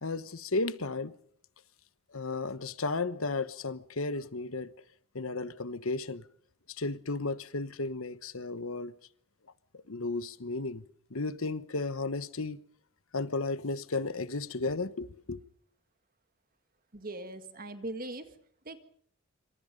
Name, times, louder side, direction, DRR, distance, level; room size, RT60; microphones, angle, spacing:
voice 1, 0.0-1.1 2.1-4.7 5.1-6.2 6.7-8.9 9.7-10.8 11.1-12.6 13.1-15.4, left 3 dB, 70° left, 1.1 m, -34 dB
voice 2, 16.9-18.4 18.6-18.8, right 2 dB, 40° right, 1.8 m, -40 dB
26.5 x 25.5 x 5.3 m
head